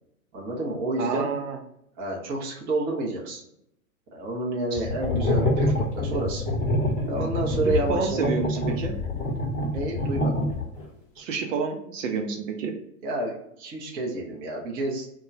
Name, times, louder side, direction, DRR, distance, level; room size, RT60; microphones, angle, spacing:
voice 1, 0.3-1.3 2.0-3.4 4.1-6.4 7.0-8.4 9.7-10.4 13.0-15.1, right 2 dB, 20° right, -2 dB, 0.6 m, -29 dB
voice 2, 1.0-1.6 4.7-4.8 7.9-8.9 11.2-12.7, right 5 dB, 65° right, 3 dB, 0.6 m, -29 dB
sound 1, 4.8-10.8, left 2 dB, 15° left, 0.8 m, -26 dB
2.2 x 2.1 x 3.8 m, 0.76 s
hypercardioid pair, 110°, 43 cm